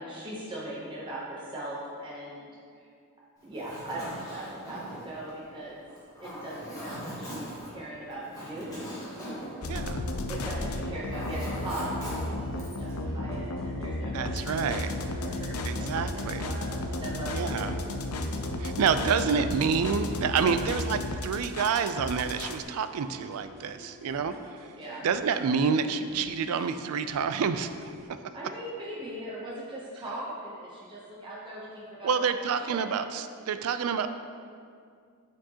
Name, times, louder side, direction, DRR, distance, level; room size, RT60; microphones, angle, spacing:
voice 1, 0.0-2.5 3.4-5.8 6.2-8.9 10.3-17.7 24.8-25.1 28.3-33.0, right 1 dB, 20° right, -6 dB, 0.7 m, -40 dB
Zipper (clothing), 3.4-10.5 10.8-13.0, equal, 15° left, 1.4 m, -41 dB
sound 1, 9.6-22.6, left 1 dB, 80° left, 0.5 m, -33 dB
voice 2, 9.7-10.0 14.1-14.9 15.6-16.5 17.3-17.7 18.6-24.7 25.0-27.7 32.0-34.1, right 6 dB, 80° right, 10 dB, 0.3 m, -28 dB
sound 2, 12.1-28.1, equal, 45° right, 1.2 m, -52 dB
8.7 x 4.5 x 2.9 m, 2.2 s
head